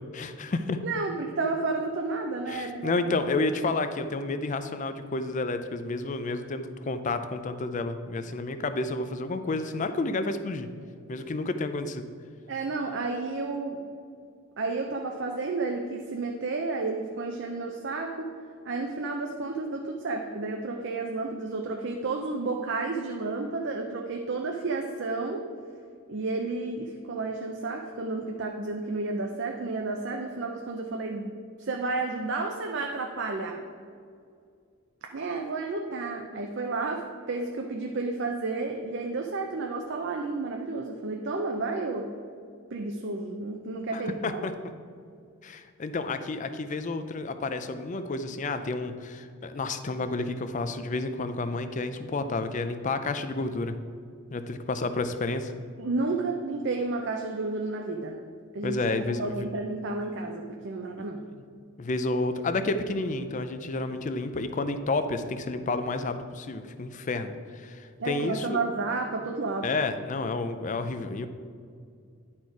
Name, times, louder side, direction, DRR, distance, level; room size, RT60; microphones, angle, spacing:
voice 1, 0.1-0.8 2.5-10.7 11.1-12.1 43.9-44.5 45.4-53.8 54.3-55.5 58.6-59.5 61.8-68.6 69.6-71.3, left 3 dB, 35° left, 10 dB, 0.4 m, -30 dB
voice 2, 0.8-3.0 12.5-13.8 14.6-18.3 18.6-25.4 26.1-33.6 35.1-42.1 42.7-44.4 55.8-58.2 58.5-58.8 59.0-61.2 68.0-69.7, right 3 dB, 55° right, 2 dB, 0.5 m, -31 dB
10.5 x 4.4 x 4.6 m, 2.3 s
head